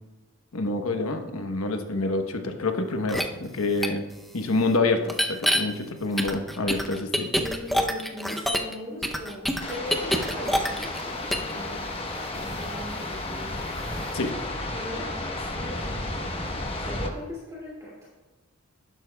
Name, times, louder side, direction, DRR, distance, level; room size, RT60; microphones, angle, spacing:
voice 1, 0.5-4.0 4.3-7.3 14.1-14.4, left 2 dB, 80° left, 5 dB, 1.0 m, -27 dB
sound 1, 3.1-3.2 3.8-3.9 5.1-5.6 6.2-8.7 9.0-11.0 11.3-11.5, equal, ahead, 0.6 m, -25 dB
voice 2, 7.3-11.8 12.3-14.0 14.7-15.1 15.3-18.1, left 1 dB, 15° right, -7 dB, 2.4 m, -39 dB
sound 2, 9.6-17.1, left 2 dB, 25° left, 1.1 m, -33 dB
11.5 x 11.0 x 2.3 m, 1.2 s
head